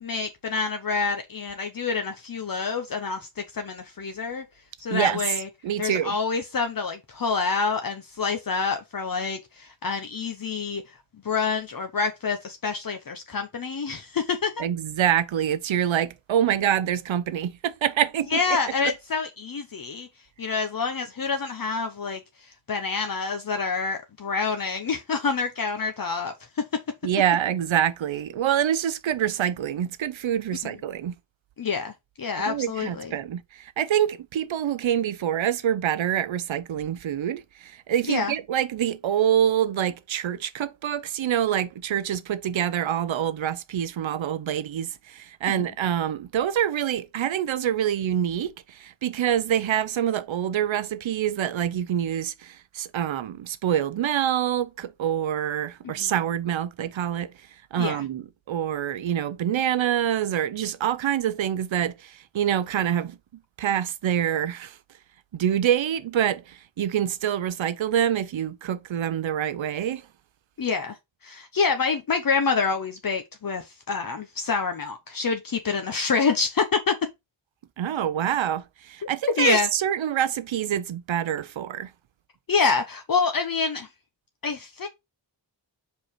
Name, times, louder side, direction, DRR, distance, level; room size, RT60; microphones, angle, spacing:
voice 1, 0.0-4.4 4.8-5.5 5.8-10.8 11.2-14.6 18.3-20.1 20.4-22.2 22.7-26.6 30.6-30.7 31.6-33.1 38.1-38.3 45.6-45.7 55.8-56.1 57.8-58.0 70.6-71.0 71.2-77.1 79.4-79.7 82.5-83.9 84.4-84.9, left 5 dB, 50° left, 0.8 m, -27 dB
voice 2, 4.9-5.2 5.6-6.1 14.6-18.6 18.8-18.9 27.0-31.1 32.5-57.3 57.7-63.2 63.6-64.8 65.3-70.0 77.8-81.9, right 10 dB, 90° right, 0.7 m, -26 dB
5.2 x 4.7 x 4.4 m
wide cardioid pair, 145°, 45 cm